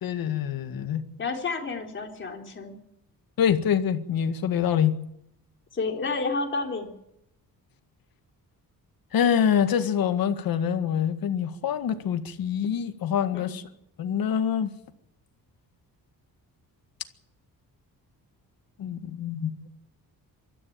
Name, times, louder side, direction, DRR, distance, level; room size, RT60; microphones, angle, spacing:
voice 1, 0.0-1.0 3.4-5.0 9.1-13.6 14.0-14.7 18.8-19.6, left 8 dB, 70° left, 1.9 m, -25 dB
voice 2, 1.2-2.8 5.7-6.9 13.3-13.6, left 3 dB, 30° left, 3.8 m, -30 dB
24.5 x 13.5 x 9.0 m
wide cardioid pair, 165°, 37 cm